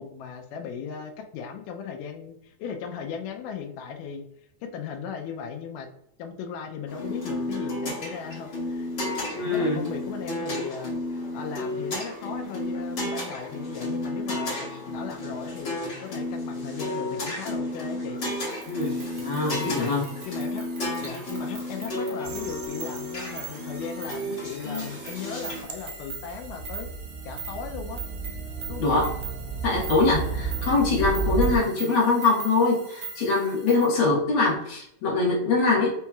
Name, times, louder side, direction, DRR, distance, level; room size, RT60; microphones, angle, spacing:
voice 1, 0.0-4.3 4.6-5.9 6.2-8.9 9.4-18.2 19.4-20.0 20.3-20.7 21.0-26.9 27.3-28.0 28.7-29.0 31.5-31.7, left 6 dB, 80° left, 3 dB, 2.0 m, -37 dB
sound 1, 6.9-25.6, left 1 dB, 45° left, 1.5 m, -32 dB
voice 2, 9.3-9.8 18.7-20.1 28.8-29.1 29.6-35.9, left 3 dB, 65° left, -5 dB, 1.3 m, -23 dB
sound 2, 18.3-34.0, right 5 dB, 65° right, 1.6 m, -42 dB
sound 3, 22.2-24.6 25.4-31.6, right 4 dB, 85° right, 2.3 m, -33 dB
5.3 x 2.9 x 2.3 m, 0.76 s
omnidirectional pair, 4.0 m